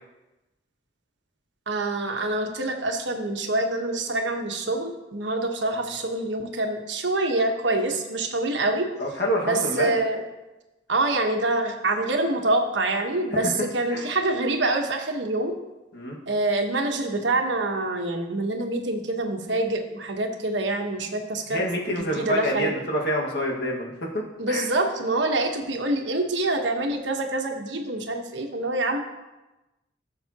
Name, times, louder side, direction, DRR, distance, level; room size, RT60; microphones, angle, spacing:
voice 1, 1.7-8.9 9.4-10.2 10.9-15.6 16.3-22.7 24.4-29.0, right 2 dB, 75° right, 3 dB, 1.2 m, -26 dB
voice 2, 9.0-10.0 13.9-14.1 15.9-16.2 21.5-24.6, equal, 65° left, -1 dB, 1.9 m, -27 dB
16.0 x 7.2 x 3.0 m, 1.0 s
head